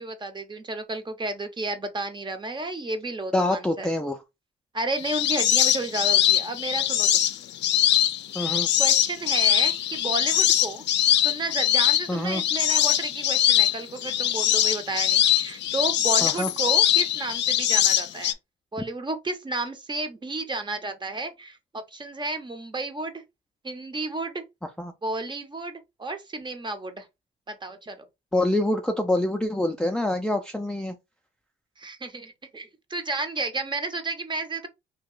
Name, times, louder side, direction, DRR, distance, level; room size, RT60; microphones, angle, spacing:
voice 1, 0.0-3.9 4.7-7.3 8.8-10.8 11.2-18.3 18.7-23.2 23.6-24.4 25.0-27.1 27.5-28.0 31.8-34.7, right 2 dB, 25° right, 0.7 m, -32 dB
voice 2, 3.3-4.2 8.3-8.7 12.1-12.4 16.2-16.5 24.8-24.9 28.3-31.0, left 1 dB, 5° left, 0.4 m, -25 dB
sound 1, 5.0-18.3, left 11 dB, 65° left, 0.4 m, -22 dB
2.8 x 2.4 x 3.7 m
cardioid pair, 90°, 20 cm